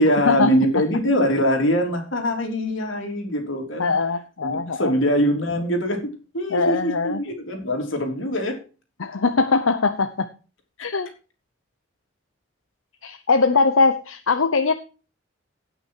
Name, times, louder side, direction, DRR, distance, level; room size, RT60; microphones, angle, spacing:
voice 1, 0.0-3.9 4.4-6.0 6.3-8.5, equal, 65° left, 3 dB, 3.5 m, -22 dB
voice 2, 3.8-4.9 6.5-7.2 9.0-10.3 10.8-11.1 13.0-14.7, left 4 dB, 85° left, 8 dB, 0.9 m, -21 dB
17.0 x 6.3 x 4.7 m, 0.35 s
head